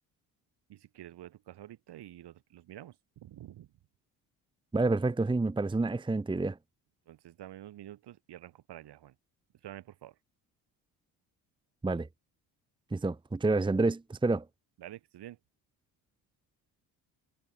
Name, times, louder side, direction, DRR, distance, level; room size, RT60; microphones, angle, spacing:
voice 1, 0.7-3.7 7.1-9.2 9.6-10.2 14.8-15.4, right 13 dB, 65° right, 5.0 m, -48 dB
voice 2, 4.7-6.6 11.8-12.1 12.9-14.5, right 3 dB, 10° right, 0.9 m, -28 dB
hypercardioid pair, 60°, 44 cm